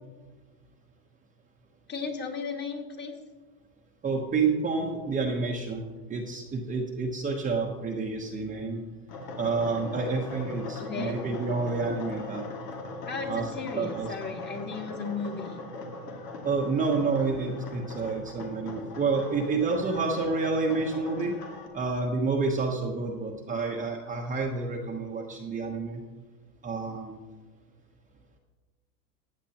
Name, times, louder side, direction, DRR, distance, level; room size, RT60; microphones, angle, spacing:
voice 1, 1.9-3.1 10.8-11.2 13.1-15.6, left 4 dB, 20° left, 2 dB, 1.7 m, -35 dB
voice 2, 4.0-5.8 6.1-8.8 9.4-12.4 13.3-14.2 16.4-21.3 21.7-26.0 26.6-27.2, right 4 dB, 15° right, 0 dB, 1.0 m, -29 dB
sound 1, 9.1-21.7, left 2 dB, 80° left, 2.2 m, -40 dB
15.0 x 9.0 x 2.9 m, 1.3 s
hypercardioid pair, 115°, 47 cm